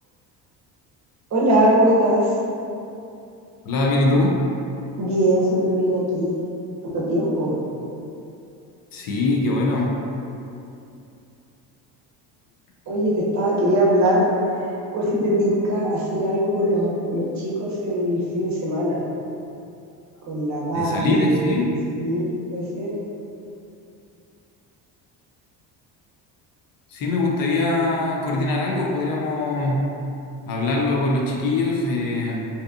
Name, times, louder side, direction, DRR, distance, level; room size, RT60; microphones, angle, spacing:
voice 1, 1.3-2.3 5.0-6.3 6.8-7.6 12.9-14.3 14.9-19.0 20.3-21.5 21.9-22.9, right 1 dB, 40° right, -5 dB, 0.7 m, -21 dB
voice 2, 3.6-4.4 8.9-9.9 20.7-21.7 26.9-29.9 30.5-32.4, left 2 dB, 55° left, -2 dB, 0.5 m, -22 dB
2.7 x 2.3 x 2.3 m, 2.6 s
supercardioid pair, 85°, 42 cm